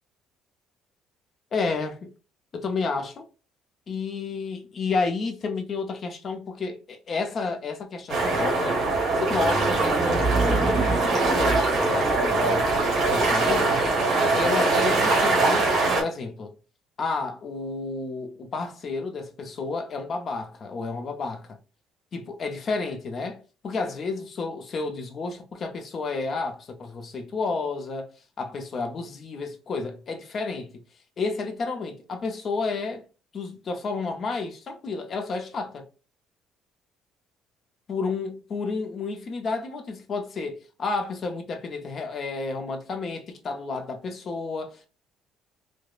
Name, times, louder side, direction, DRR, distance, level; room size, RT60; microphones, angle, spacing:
voice 1, 1.5-2.1 2.5-3.2 3.9-8.8 9.2-12.7 13.1-13.8 14.3-16.5 17.0-21.6 22.1-28.1 28.4-30.8 31.2-33.0 33.3-35.8 37.9-44.9, left 4 dB, 35° left, 0.5 m, -31 dB
sound 1, 8.1-16.0, right 3 dB, 50° right, 1.8 m, -22 dB
sound 2, 9.2-13.0, right 3 dB, 5° right, 0.6 m, -29 dB
4.8 x 2.0 x 2.4 m
cardioid pair, 160°, 0 cm